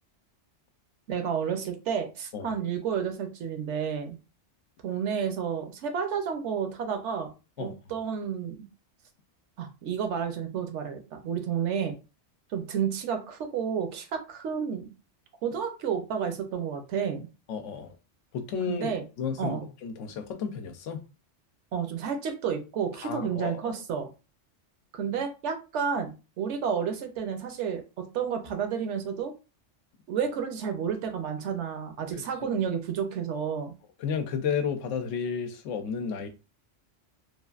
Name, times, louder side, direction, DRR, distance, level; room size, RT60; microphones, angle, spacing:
voice 1, 1.1-4.2 4.8-7.3 7.6-8.6 9.6-11.9 12.5-14.9 15.4-17.3 18.7-19.0 19.4-19.7 21.7-24.1 24.9-29.3 30.1-33.7, right 7 dB, 75° right, 0.9 m, -31 dB
voice 2, 17.5-18.0 18.3-21.0 23.0-23.7 34.0-36.3, left 6 dB, 85° left, 0.9 m, -32 dB
3.2 x 2.4 x 2.3 m
omnidirectional pair, 1.3 m